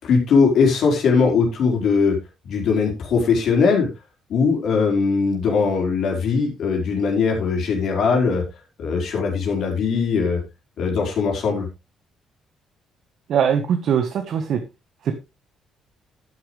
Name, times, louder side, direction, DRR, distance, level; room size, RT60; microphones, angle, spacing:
voice 1, 0.0-2.2 2.4-3.9 4.3-8.4 8.8-10.4 10.8-11.7, left 5 dB, 55° left, 0 dB, 4.4 m, -20 dB
voice 2, 13.3-14.6 15.0-15.1, right 8 dB, 50° right, 6 dB, 1.4 m, -21 dB
11.5 x 10.0 x 3.3 m, 0.25 s
cardioid pair, 180°, 0 cm